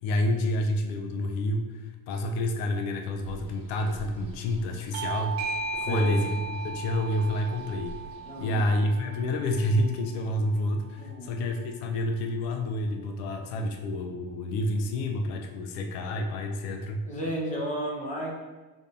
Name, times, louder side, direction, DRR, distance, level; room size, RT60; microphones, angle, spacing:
voice 1, 0.0-5.5 5.8-8.0 8.4-17.0, left 1 dB, 55° left, 4 dB, 0.6 m, -29 dB
Bird, 3.1-9.0, right 3 dB, 30° right, 0.9 m, -47 dB
Bell / Doorbell, 4.9-10.1, right 3 dB, 55° right, 0.5 m, -36 dB
voice 2, 5.8-6.3 8.3-8.7 11.0-11.4 17.1-18.3, equal, 15° left, -2 dB, 0.7 m, -33 dB
5.3 x 3.4 x 2.7 m, 1.2 s
cardioid pair, 170°, 45 cm